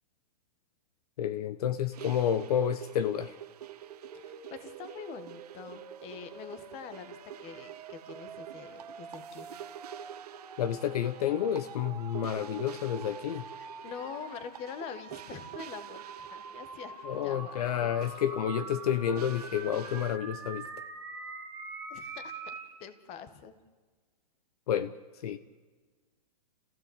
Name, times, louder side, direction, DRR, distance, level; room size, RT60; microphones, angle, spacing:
voice 1, 1.2-3.4 10.6-13.4 17.0-20.7 24.7-24.9 25.2-25.4, left 9 dB, 65° left, 12 dB, 1.0 m, -30 dB
sound 1, 1.9-20.2, right 11 dB, 70° right, 0.9 m, -48 dB
sound 2, 3.8-22.7, right 4 dB, 10° right, 2.9 m, -46 dB
voice 2, 4.1-9.5 13.6-17.9 21.9-22.4 22.8-23.5, left 7 dB, 30° left, 10 dB, 1.7 m, -45 dB
28.5 x 15.5 x 8.2 m, 1.4 s
hypercardioid pair, 150°, 21 cm